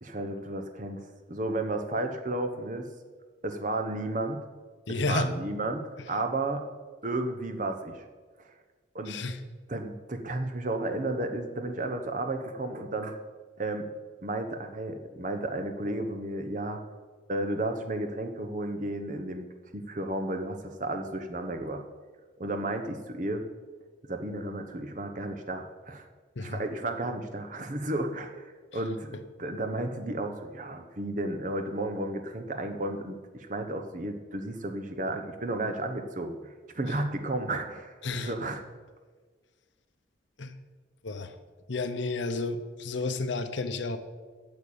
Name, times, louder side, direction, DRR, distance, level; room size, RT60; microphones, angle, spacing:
voice 1, 0.0-2.9 3.4-4.5 4.9-6.7 7.0-8.0 8.4-8.5 8.9-9.2 9.7-13.2 13.6-13.9 14.2-16.8 17.3-19.5 19.7-21.8 22.4-23.4 24.1-26.0 26.4-38.6, right 2 dB, 40° right, 5 dB, 0.9 m, -33 dB
voice 2, 4.9-5.3 9.1-9.4 26.4-26.6 38.0-38.3 40.4-40.5 41.0-41.4 41.7-44.0, left 3 dB, 70° left, 10 dB, 0.8 m, -31 dB
8.7 x 6.8 x 8.6 m, 1.5 s
head